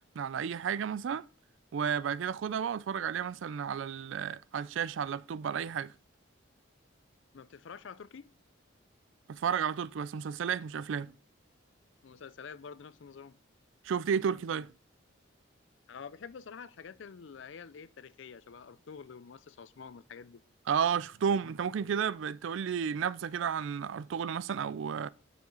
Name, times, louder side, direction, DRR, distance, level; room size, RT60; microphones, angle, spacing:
voice 1, 0.2-1.3 1.7-5.9 9.3-11.1 13.8-14.7 20.7-25.1, right 7 dB, 70° right, 0.4 m, -32 dB
voice 2, 7.3-8.3 12.0-13.4 15.9-20.4, left 6 dB, 70° left, 0.4 m, -47 dB
7.2 x 6.2 x 3.7 m
head